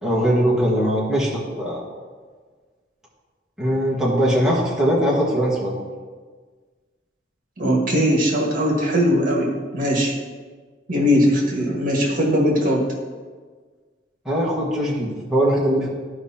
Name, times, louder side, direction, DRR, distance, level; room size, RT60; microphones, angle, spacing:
voice 1, 0.0-1.8 3.6-5.7 14.2-15.9, equal, ahead, -8 dB, 1.6 m, -21 dB
voice 2, 7.6-10.1 10.9-12.8, equal, 50° right, -2 dB, 1.7 m, -20 dB
13.5 x 5.1 x 2.9 m, 1.5 s
head